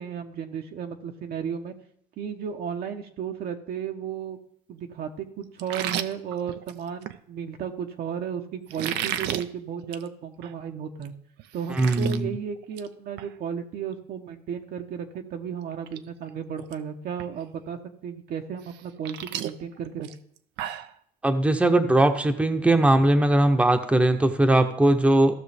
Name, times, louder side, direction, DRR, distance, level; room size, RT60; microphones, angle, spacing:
voice 1, 0.0-1.7 2.2-4.4 4.7-11.1 11.5-20.1, right 7 dB, 65° right, 4 dB, 0.9 m, -34 dB
sound 1, 5.6-7.2 8.7-9.4 9.8-10.1 10.4-10.5 11.0-11.1 11.4-12.2 12.6-12.9 13.2-13.3 15.1-15.2 15.7-16.0 16.3-16.7 17.2-17.3 18.6-20.9, right 11 dB, 85° right, 0.6 m, -33 dB
voice 2, 11.7-12.4 21.2-25.4, right 1 dB, 5° right, 6 dB, 0.8 m, -20 dB
15.0 x 6.1 x 3.4 m, 0.68 s
cardioid pair, 110°, 17 cm